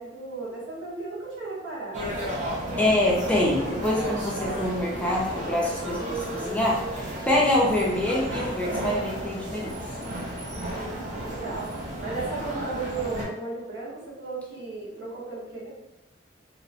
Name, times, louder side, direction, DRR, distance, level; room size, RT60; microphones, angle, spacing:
voice 1, 0.0-2.4 10.6-15.7, right 3 dB, 85° right, -6 dB, 1.1 m, -35 dB
sound 1, 1.9-13.2, right 1 dB, 40° right, 0.6 m, -33 dB
voice 2, 2.8-9.8, left 1 dB, 5° left, -4 dB, 0.4 m, -25 dB
2.7 x 2.1 x 2.7 m, 0.97 s
head